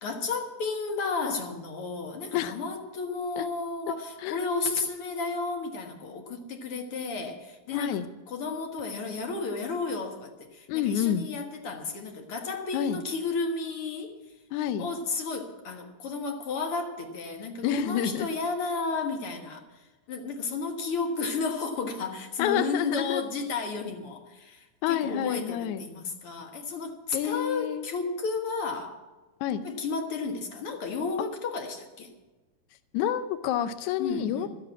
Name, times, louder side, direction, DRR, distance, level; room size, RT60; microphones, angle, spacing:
voice 1, 0.0-8.0 8.3-14.2 14.8-19.8 20.1-29.0 29.6-32.1 34.0-34.5, left 4 dB, 55° left, 3 dB, 2.3 m, -33 dB
voice 2, 7.7-8.0 10.7-11.3 12.7-13.0 14.5-14.9 17.6-18.3 22.4-23.2 24.8-25.9 27.1-27.9 29.4-29.6 32.9-34.5, left 10 dB, 85° left, 11 dB, 2.1 m, -28 dB
14.0 x 7.9 x 8.7 m, 1.2 s
omnidirectional pair, 3.3 m